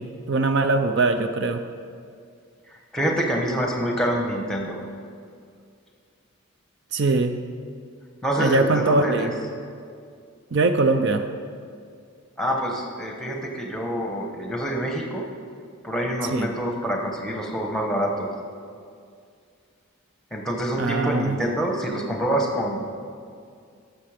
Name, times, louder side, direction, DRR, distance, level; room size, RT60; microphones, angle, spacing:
voice 1, 0.0-1.6 6.9-7.4 8.4-9.3 10.5-11.2 16.3-16.5 20.8-21.4, right 3 dB, 55° right, 7 dB, 0.5 m, -22 dB
voice 2, 2.7-4.9 8.2-9.3 12.4-15.3 15.8-18.3 20.3-22.8, equal, ahead, 1 dB, 1.1 m, -26 dB
13.0 x 6.7 x 5.0 m, 2.3 s
head